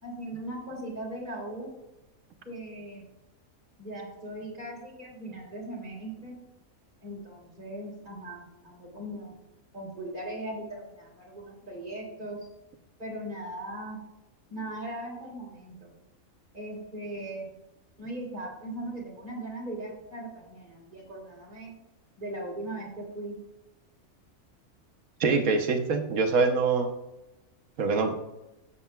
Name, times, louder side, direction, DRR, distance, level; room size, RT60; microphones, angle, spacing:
voice 1, 0.0-1.7 2.4-3.0 3.8-6.3 7.0-9.3 9.7-12.5 13.0-14.0 14.5-15.9 16.5-17.5 18.0-21.7 22.2-23.4, right 1 dB, 35° right, -4 dB, 3.4 m, -39 dB
voice 2, 25.2-26.9 27.8-28.1, right 4 dB, 75° right, 4 dB, 1.4 m, -24 dB
13.0 x 8.4 x 2.3 m, 0.97 s
omnidirectional pair, 1.5 m